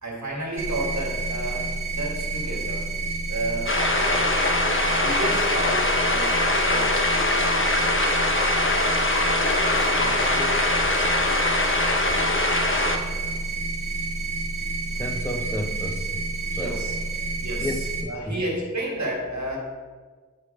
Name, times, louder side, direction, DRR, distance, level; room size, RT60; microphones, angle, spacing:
voice 1, 0.0-2.9 3.3-4.3 4.7-8.3 8.5-9.0 9.5-10.6 16.5-16.9 17.4-19.6, right 1 dB, 75° right, -3 dB, 1.8 m, -32 dB
sound 1, 0.6-18.0, right 3 dB, 45° right, 1.3 m, -29 dB
sound 2, 3.7-13.0, left 2 dB, 45° left, 0.7 m, -22 dB
voice 2, 14.9-16.8 17.2-17.3 17.6-18.4, left 1 dB, 10° left, 3 dB, 0.6 m, -32 dB
9.3 x 3.1 x 4.7 m, 1.5 s
wide cardioid pair, 40°, 29 cm